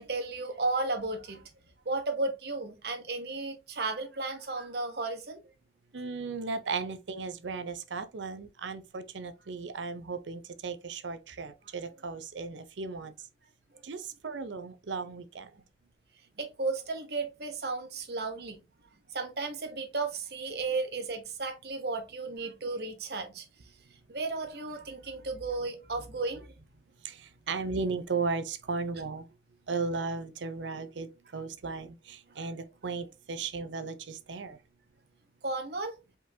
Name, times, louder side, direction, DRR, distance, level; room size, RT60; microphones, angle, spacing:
voice 1, 0.0-1.5 1.8-5.4 13.7-13.8 16.4-18.6 19.1-23.5 23.9-26.5 32.3-32.5 35.4-35.9, right 3 dB, 60° right, 1.0 m, -34 dB
voice 2, 5.9-13.1 13.8-15.5 27.0-29.3 29.7-34.6, right 4 dB, 80° right, 0.6 m, -36 dB
5.0 x 3.8 x 2.7 m
head